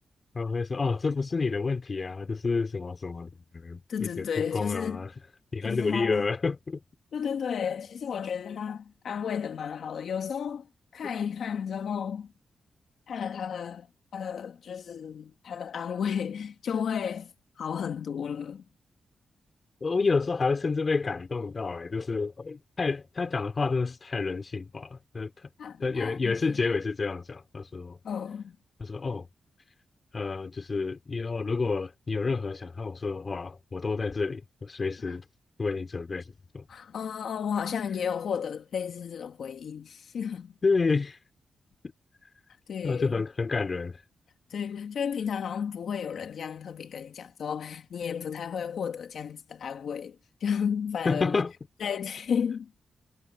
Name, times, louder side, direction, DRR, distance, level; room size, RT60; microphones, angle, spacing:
voice 1, 0.3-5.1 5.5-6.8 19.8-25.5 25.8-28.0 28.8-29.3 30.1-35.2 35.6-36.7 40.6-41.2 42.8-44.0 51.0-51.5, left 4 dB, 40° left, 3.0 m, -29 dB
voice 2, 3.9-5.1 5.6-6.3 7.1-10.7 10.9-12.3 13.1-13.9 14.1-18.6 25.6-26.6 28.0-28.6 35.1-35.2 36.7-40.5 42.7-43.2 44.5-51.4 51.8-52.7, left 7 dB, 75° left, 1.8 m, -33 dB
cardioid pair, 90°, 0 cm